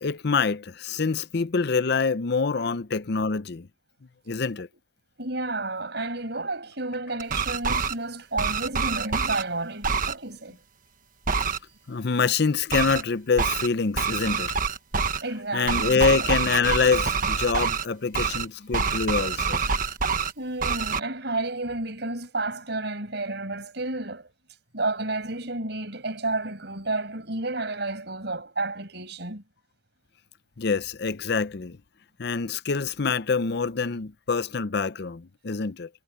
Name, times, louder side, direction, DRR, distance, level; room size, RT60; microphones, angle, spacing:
voice 1, 0.0-3.7 4.3-4.7 11.9-14.5 15.5-19.6 30.6-31.8 32.2-35.9, left 5 dB, 60° left, 0.7 m, -25 dB
voice 2, 5.2-10.6 15.2-16.3 20.4-24.3 24.7-29.4, right 2 dB, 60° right, 6.6 m, -31 dB
sound 1, 7.2-7.9 8.4-9.4 9.8-10.1 11.3-11.6 12.7-13.0 13.4-13.7 14.0-15.2 15.7-17.8 18.1-18.4 18.7-20.3 20.6-21.0, right 5 dB, 45° right, 1.3 m, -26 dB
head